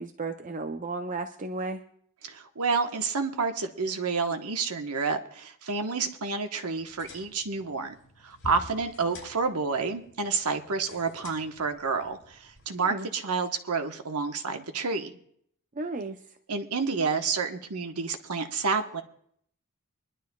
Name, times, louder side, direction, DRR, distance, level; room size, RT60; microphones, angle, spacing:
voice 1, 0.0-1.8 12.7-13.1 15.8-16.2, right 3 dB, 35° right, 6 dB, 0.6 m, -34 dB
voice 2, 2.2-8.0 8.2-15.1 16.5-19.0, right 4 dB, 80° right, 6 dB, 1.1 m, -29 dB
sound 1, 6.7-12.7, left 1 dB, 60° left, 5.1 m, -49 dB
24.5 x 11.5 x 2.3 m, 0.66 s
head